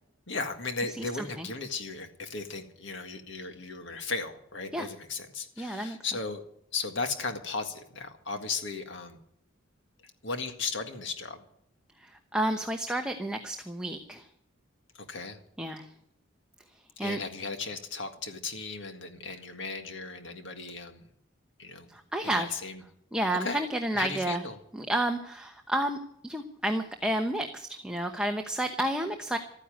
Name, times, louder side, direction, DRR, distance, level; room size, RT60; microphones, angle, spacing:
voice 1, 0.3-6.4 6.7-9.2 10.2-11.4 15.0-15.4 17.0-21.0 21.6-21.9 22.2-22.8 23.3-23.6 23.9-24.6, left 4 dB, 60° left, 6 dB, 1.9 m, -36 dB
voice 2, 0.9-1.5 4.7-4.9 5.6-6.0 12.0-14.3 15.6-15.9 17.0-17.2 21.9-22.5 23.1-24.4 24.7-26.0 26.2-29.4, right 1 dB, 5° right, 4 dB, 0.9 m, -31 dB
14.0 x 10.0 x 9.2 m, 0.71 s
head